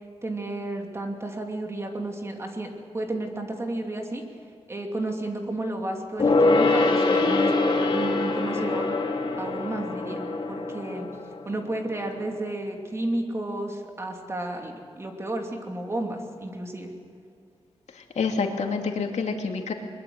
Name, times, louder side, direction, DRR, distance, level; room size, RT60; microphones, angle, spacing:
voice 1, 0.2-2.7 2.9-4.2 4.7-7.5 7.9-9.0 9.4-11.1 11.4-16.9, right 1 dB, 25° right, 2 dB, 2.7 m, -32 dB
Gong, 6.2-12.1 12.4-12.5, left 3 dB, 45° left, 2.5 m, -24 dB
voice 2, 17.9-19.7, left 5 dB, 90° left, 3 dB, 2.4 m, -28 dB
22.0 x 21.5 x 7.9 m, 2.4 s
wide cardioid pair, 160°, 11 cm